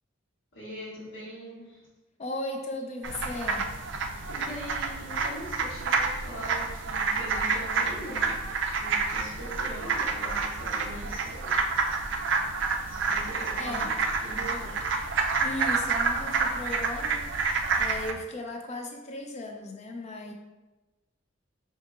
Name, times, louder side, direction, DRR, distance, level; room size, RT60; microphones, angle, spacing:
voice 1, 0.5-1.8 4.3-8.4 8.8-11.7 12.9-13.9 14.2-14.7, right 1 dB, 80° left, -7 dB, 1.3 m, -41 dB
voice 2, 2.2-3.7 13.6-13.9 14.9-15.0 15.4-17.3 17.8-20.3, left 1 dB, 35° left, 2 dB, 0.5 m, -36 dB
sound 1, 3.0-18.1, right 4 dB, 70° right, 0.4 m, -29 dB
5.5 x 2.8 x 2.4 m, 1.1 s
head